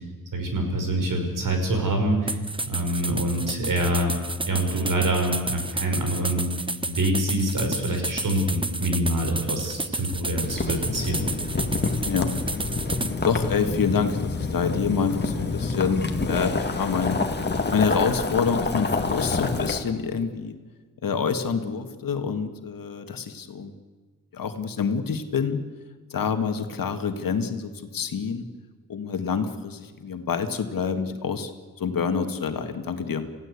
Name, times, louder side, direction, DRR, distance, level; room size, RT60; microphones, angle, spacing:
voice 1, 0.3-4.1 4.5-6.5 6.9-11.3, right 1 dB, 65° right, 4 dB, 5.8 m, -25 dB
sound 1, 2.3-13.1, right 2 dB, 15° right, 0.9 m, -31 dB
Boiling, 10.4-19.8, left 3 dB, 30° left, 1.9 m, -27 dB
voice 2, 13.2-17.2 17.7-20.6 21.0-23.7 24.3-25.6 26.1-28.5 28.9-31.5 31.8-33.3, left 6 dB, 75° left, 7 dB, 1.9 m, -27 dB
28.5 x 16.0 x 8.4 m, 1.4 s
wide cardioid pair, 130°, 35 cm